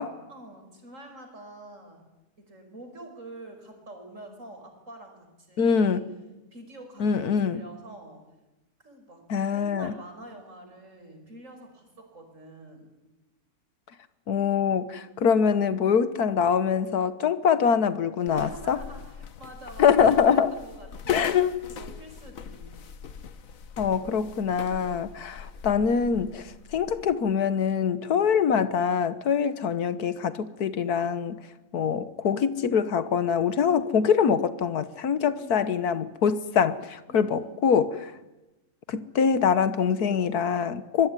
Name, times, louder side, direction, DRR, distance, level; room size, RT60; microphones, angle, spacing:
voice 1, 0.3-2.0 2.4-6.0 6.5-8.2 8.8-9.2 9.5-12.9 18.2-21.4 21.7-22.7 35.1-35.8 37.1-37.6, right 1 dB, 55° right, 4 dB, 5.9 m, -46 dB
voice 2, 5.6-6.0 7.0-7.6 9.3-9.9 14.3-18.8 19.8-20.5 21.1-21.6 23.8-31.4 31.7-38.1 38.9-41.1, left 7 dB, 80° left, 14 dB, 1.7 m, -24 dB
sound 1, 18.3-27.2, left 6 dB, 60° left, 1.5 m, -42 dB
25.0 x 21.5 x 9.8 m, 1.0 s
omnidirectional pair, 1.6 m